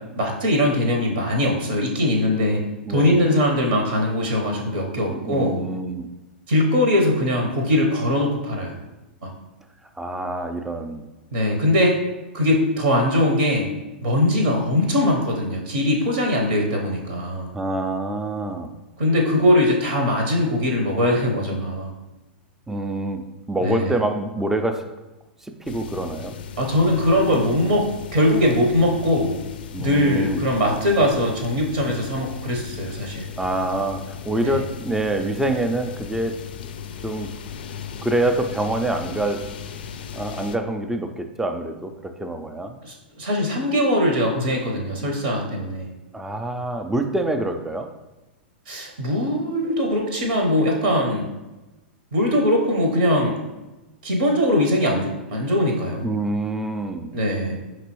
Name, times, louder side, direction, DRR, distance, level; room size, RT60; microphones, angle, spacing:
voice 1, 0.2-2.6 2.9-5.6 6.5-8.7 9.2-9.3 11.3-12.0 12.3-13.7 14.0-17.5 19.0-21.9 23.6-23.9 26.6-27.8 28.1-29.4 29.8-33.3 34.4-34.6 42.8-45.9 48.7-51.2 52.1-53.4 54.0-56.1 57.1-57.6, left 1 dB, 65° right, 0.8 m, -21 dB
voice 2, 2.9-3.2 5.1-6.1 10.0-11.1 17.5-18.7 22.7-24.9 25.4-26.4 29.7-30.4 31.9-32.0 33.4-36.5 37.0-37.4 38.0-39.6 40.1-42.8 46.1-48.0 56.0-57.1, right 2 dB, 5° right, 0.3 m, -26 dB
sound 1, 25.6-40.6, left 7 dB, 65° left, 0.4 m, -37 dB
5.2 x 3.1 x 3.0 m
hypercardioid pair, 105°, 6 cm